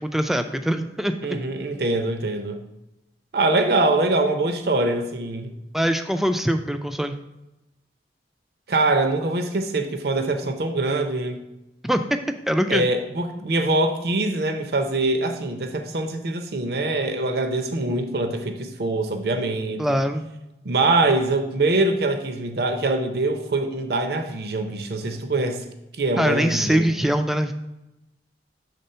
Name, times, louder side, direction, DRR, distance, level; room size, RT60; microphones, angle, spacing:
voice 1, 0.0-1.4 5.7-7.2 11.8-12.0 12.5-12.9 19.8-20.3 26.2-27.5, equal, ahead, 7 dB, 0.3 m, -23 dB
voice 2, 1.2-2.6 3.3-5.5 8.7-11.4 12.7-19.8 20.6-25.6 25.9-26.9, right 2 dB, 65° right, 6 dB, 0.6 m, -23 dB
6.8 x 3.5 x 5.5 m, 0.93 s
head